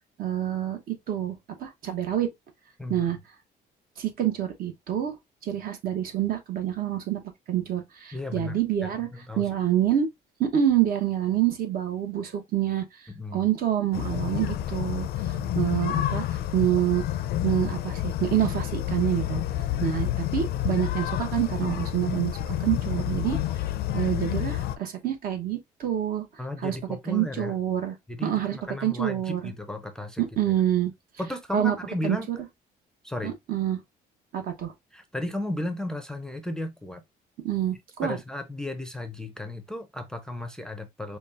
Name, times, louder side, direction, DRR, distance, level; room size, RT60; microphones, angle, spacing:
voice 1, 0.2-2.3 2.9-3.2 4.0-5.1 5.4-7.2 7.5-9.1 9.4-10.1 10.4-12.8 13.3-15.1 15.6-16.2 16.5-17.0 17.4-19.4 19.8-23.4 23.9-26.2 26.6-26.8 27.1-27.9 28.2-29.4 30.2-30.9 31.5-31.8 32.0-32.4 33.2-33.8 34.3-34.7 37.4-38.2, right 11 dB, 60° right, 1.1 m, -27 dB
voice 2, 8.1-9.5 13.1-13.5 15.3-15.6 26.4-27.5 28.1-30.5 31.2-32.3 33.0-33.3 34.9-37.0 38.0-41.2, left 1 dB, 5° left, 0.5 m, -34 dB
sound 1, 13.9-24.8, left 12 dB, 70° left, 0.4 m, -29 dB
5.2 x 2.3 x 2.5 m
cardioid pair, 110°, 17 cm